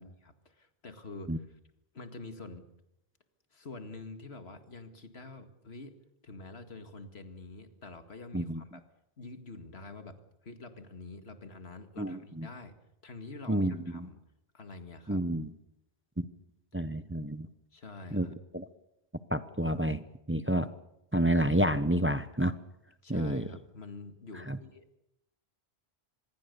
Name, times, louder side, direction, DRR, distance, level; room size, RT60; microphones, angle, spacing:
voice 1, 0.0-1.5 1.9-2.7 3.5-5.9 6.2-8.8 9.2-10.2 10.4-14.2 14.5-15.3 17.7-18.4 23.0-25.0, left 3 dB, 85° left, 8 dB, 2.3 m, -47 dB
voice 2, 12.0-12.5 13.5-14.1 15.1-15.5 16.2-16.3 16.7-17.5 18.1-18.3 18.5-18.7 19.3-20.0 20.3-20.7 21.1-22.5 23.1-23.5 24.5-24.6, right 1 dB, 15° right, 13 dB, 0.8 m, -29 dB
25.5 x 21.0 x 6.9 m, 0.84 s
omnidirectional pair, 1.1 m